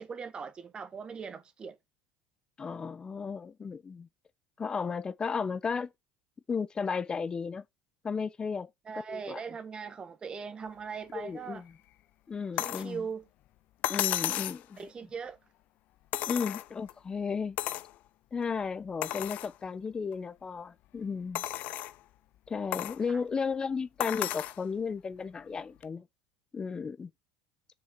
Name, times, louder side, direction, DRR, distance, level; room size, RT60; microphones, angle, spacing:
voice 1, 0.0-1.8 8.8-11.6 12.6-13.2 14.8-15.4 23.1-23.2, right 6 dB, 30° right, 1.5 m, -40 dB
voice 2, 2.6-4.1 4.6-5.9 6.5-7.6 8.0-8.7 9.1-9.4 11.1-11.7 12.3-13.0 13.9-14.8 16.3-17.6 18.3-21.4 22.5-26.0 26.5-27.1, left 5 dB, 25° left, 0.9 m, -34 dB
sound 1, 12.6-12.9 13.8-14.6 16.1-16.9 17.6-17.9 18.4-18.5 19.0-19.5 20.1-20.2 21.3-22.0 22.7-23.0 24.0-24.6 25.8-25.9, left 15 dB, 55° left, 0.6 m, -33 dB
7.3 x 6.4 x 6.1 m
hypercardioid pair, 85°, 3 cm